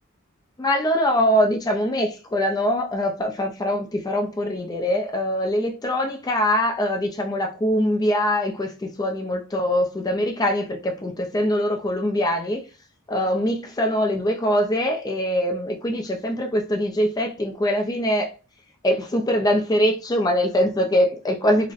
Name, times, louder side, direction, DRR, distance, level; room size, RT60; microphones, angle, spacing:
voice 1, 0.6-12.6 13.1-18.3 18.8-21.7, equal, 15° left, 0.3 m, -23 dB
3.9 x 2.0 x 2.4 m
head